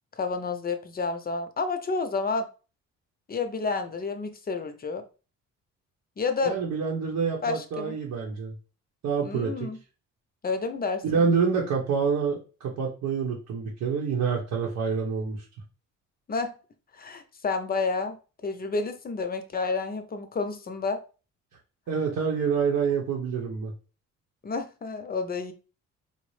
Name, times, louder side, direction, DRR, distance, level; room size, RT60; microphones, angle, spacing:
voice 1, 0.2-2.5 3.3-5.0 6.2-6.5 7.4-8.0 9.2-9.8 10.4-11.3 16.3-16.5 17.0-18.2 18.4-21.0 24.4-25.5, left 4 dB, 30° left, 7 dB, 0.6 m, -30 dB
voice 2, 6.4-8.5 9.0-9.7 11.0-15.4 21.9-23.7, right 5 dB, 80° right, -3 dB, 0.9 m, -27 dB
4.3 x 2.0 x 3.1 m, 0.34 s
cardioid pair, 90°, 30 cm